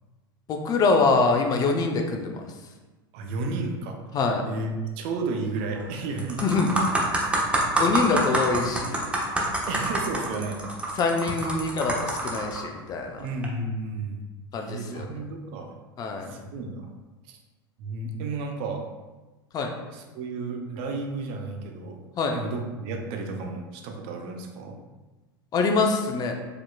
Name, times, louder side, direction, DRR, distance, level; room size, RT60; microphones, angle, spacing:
voice 1, 0.5-2.5 4.1-4.4 6.4-6.7 7.8-9.0 11.0-13.3 14.5-15.1 16.0-16.4 19.5-19.7 22.2-22.4 25.5-26.3, left 4 dB, 30° left, 3 dB, 0.6 m, -24 dB
voice 2, 3.1-4.0 4.4-6.7 7.2-7.3 8.1-8.3 9.7-10.6 13.2-14.2 14.6-15.7 16.3-16.9 17.3-17.4 17.8-18.8 19.9-22.0 22.3-24.8, right 3 dB, 45° right, 3 dB, 0.6 m, -32 dB
sound 1, 5.6-5.8 6.2-12.6 13.3-13.5, right 1 dB, 10° right, 0.7 m, -26 dB
5.0 x 2.9 x 2.3 m, 1.2 s
figure-of-eight pair, 80°, 13 cm